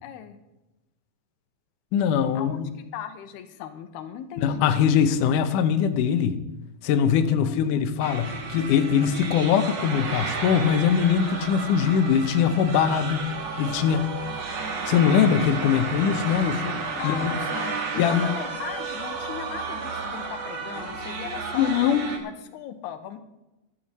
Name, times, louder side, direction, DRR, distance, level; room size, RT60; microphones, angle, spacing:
voice 1, 0.0-0.4 2.3-4.7 7.5-7.9 17.0-23.2, left 9 dB, 85° left, 9 dB, 2.8 m, -38 dB
voice 2, 1.9-2.7 4.4-6.4 6.8-13.3 13.6-14.2 14.9-17.3 18.0-18.3 21.5-22.0, left 8 dB, 70° left, 7 dB, 2.1 m, -22 dB
sound 1, 8.0-22.2, right 4 dB, 50° right, 2.3 m, -32 dB
14.5 x 12.5 x 4.2 m, 0.99 s
omnidirectional pair, 4.6 m